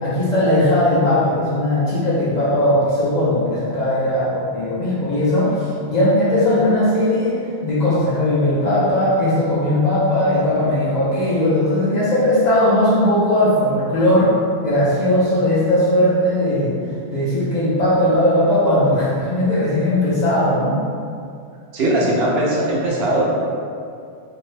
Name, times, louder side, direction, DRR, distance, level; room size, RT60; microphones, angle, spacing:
voice 1, 0.0-14.3 14.6-16.8 17.1-20.8, left 1 dB, 50° left, -10 dB, 0.6 m, -18 dB
voice 2, 21.7-23.2, right 1 dB, 70° right, -4 dB, 0.8 m, -19 dB
2.6 x 2.1 x 3.1 m, 2.4 s
omnidirectional pair, 1.1 m